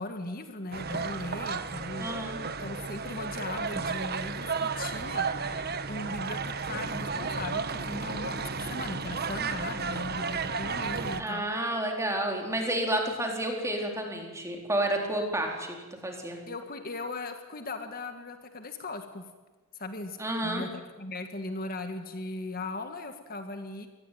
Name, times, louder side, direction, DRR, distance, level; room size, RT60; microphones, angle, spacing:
voice 1, 0.0-2.1 2.6-5.3 5.9-11.4 16.5-19.3 19.7-20.2 20.4-23.9, left 2 dB, 45° left, 7 dB, 1.8 m, -38 dB
sound 1, 0.7-11.2, right 4 dB, 45° right, 1.4 m, -33 dB
voice 2, 2.0-2.4 11.2-15.8 16.0-16.4 20.2-20.6, right 1 dB, 15° right, 2 dB, 4.1 m, -30 dB
25.0 x 19.5 x 9.3 m, 1.2 s
head